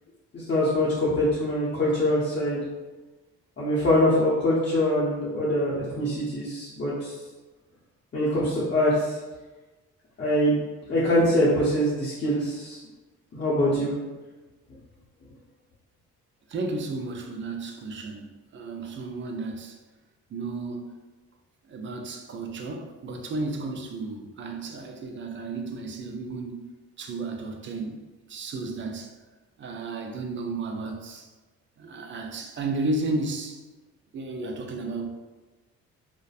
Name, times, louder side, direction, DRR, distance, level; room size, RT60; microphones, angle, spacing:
voice 1, 0.3-2.6 3.6-7.1 8.1-9.2 10.2-10.6 10.9-12.8 13.3-13.9, left 1 dB, 35° left, -8 dB, 0.7 m, -24 dB
voice 2, 16.5-18.3 18.5-19.8 20.3-20.9 21.7-26.7 27.0-28.0 28.3-29.1 29.6-31.3 31.8-33.6 34.1-35.1, right 2 dB, 40° right, 3 dB, 0.4 m, -33 dB
2.5 x 2.1 x 2.3 m, 1.2 s
cardioid pair, 85°, 30 cm